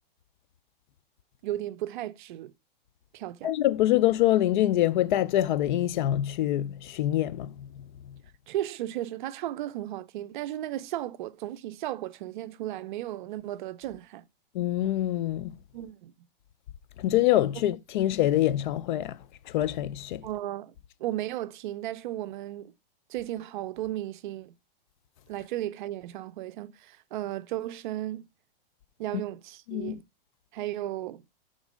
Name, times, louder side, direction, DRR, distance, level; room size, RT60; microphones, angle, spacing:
voice 1, 1.4-2.5 3.1-3.5 8.5-14.2 15.7-16.1 20.2-20.7 21.0-22.7 23.1-24.5 25.3-28.2 29.0-30.0 30.5-31.2, right 13 dB, 55° right, 0.5 m, -35 dB
voice 2, 3.4-7.7 14.5-15.6 17.0-19.2 19.5-20.2 29.7-30.0, left 13 dB, 55° left, 0.5 m, -25 dB
6.3 x 3.8 x 5.0 m
hypercardioid pair, 145°, 29 cm